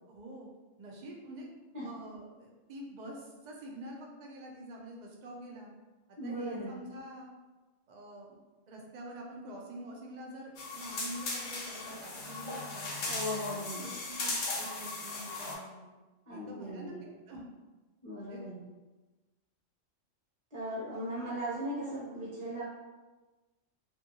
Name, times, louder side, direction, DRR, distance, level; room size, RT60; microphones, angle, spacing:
voice 1, 0.1-0.5 0.8-1.5 1.8-5.7 6.2-7.3 7.9-8.4 8.7-12.9 13.3-15.9 16.3-17.4 18.3-18.4, right 1 dB, 70° right, -1 dB, 0.4 m, -46 dB
voice 2, 6.2-6.7 13.1-13.8 16.3-17.0 18.0-18.7 20.5-22.6, equal, 25° right, -8 dB, 0.9 m, -38 dB
sound 1, 10.6-15.5, left 2 dB, 75° left, 1.0 m, -37 dB
2.6 x 2.6 x 2.7 m, 1.2 s
omnidirectional pair, 1.3 m